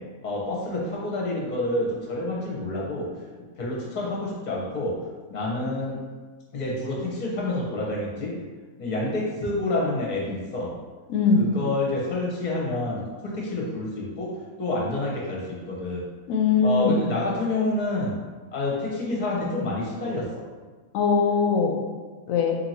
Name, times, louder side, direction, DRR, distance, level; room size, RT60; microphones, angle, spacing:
voice 1, 0.2-3.1 3.6-4.9 5.3-6.0 6.5-8.3 8.8-10.7 11.4-14.3 14.6-15.4 15.7-16.0 16.6-18.1 18.5-20.4, left 2 dB, 35° left, -4 dB, 0.8 m, -28 dB
voice 2, 11.1-11.4 16.3-17.0 20.9-21.7 22.3-22.6, left 5 dB, 70° left, 3 dB, 0.9 m, -21 dB
2.8 x 2.8 x 4.2 m, 1.4 s
omnidirectional pair, 1.6 m